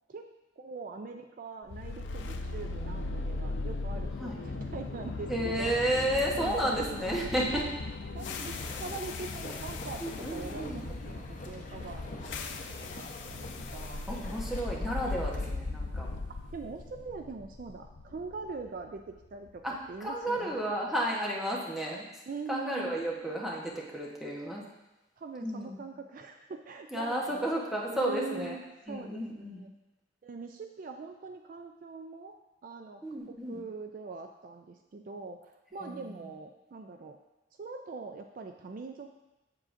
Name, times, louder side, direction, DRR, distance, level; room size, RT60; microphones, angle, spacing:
voice 1, 0.6-5.7 6.4-6.8 8.1-14.1 16.5-20.5 22.3-23.0 25.2-27.5 27.9-28.6 28.9-29.7 30.2-32.3 32.6-37.2 37.6-39.2, right 4 dB, 50° right, 5 dB, 0.4 m, -43 dB
sound 1, 1.7-19.8, left 3 dB, 90° left, 0.5 m, -38 dB
voice 2, 5.3-7.7 10.0-10.8 14.1-16.1 19.6-19.7 20.0-22.1 22.5-24.6 25.4-25.8 26.9-28.6 28.9-29.6 33.0-33.6 35.8-36.3, right 1 dB, ahead, -4 dB, 1.0 m, -32 dB
sound 2, 8.2-15.5, left 2 dB, 45° left, 0.8 m, -44 dB
7.5 x 7.4 x 2.6 m, 0.99 s
head